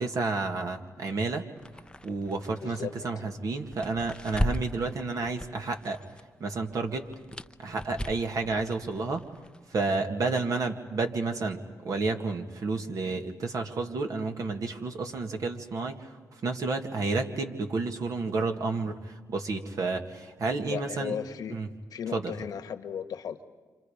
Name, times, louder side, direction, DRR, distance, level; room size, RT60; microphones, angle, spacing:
voice 1, 0.0-1.5 2.0-6.0 6.4-7.1 7.6-9.2 9.7-21.2 21.5-21.7 22.1-22.3, right 3 dB, 65° right, 4 dB, 2.1 m, -31 dB
sound 1, 1.6-6.2 6.5-10.0, left 1 dB, 15° left, 0.7 m, -37 dB
voice 2, 2.6-2.9 20.7-21.6 21.9-23.5, left 8 dB, 75° left, 7 dB, 1.4 m, -35 dB
29.5 x 27.0 x 5.1 m, 1.4 s
supercardioid pair, 60°, 7 cm